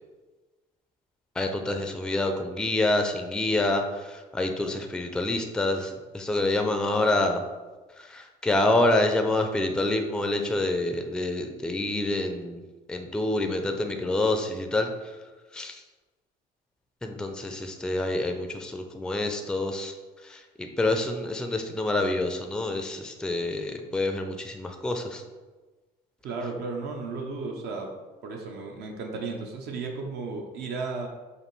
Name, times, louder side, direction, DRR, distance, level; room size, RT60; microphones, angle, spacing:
voice 1, 1.4-7.4 8.0-12.6 12.9-14.9 15.5-15.8 17.0-19.9 20.2-25.2, left 2 dB, 5° left, 5 dB, 0.3 m, -27 dB
voice 2, 26.2-27.9 28.2-31.1, right 4 dB, 75° right, 1 dB, 0.6 m, -34 dB
5.1 x 2.5 x 3.1 m, 1.2 s
cardioid pair, 110°, 17 cm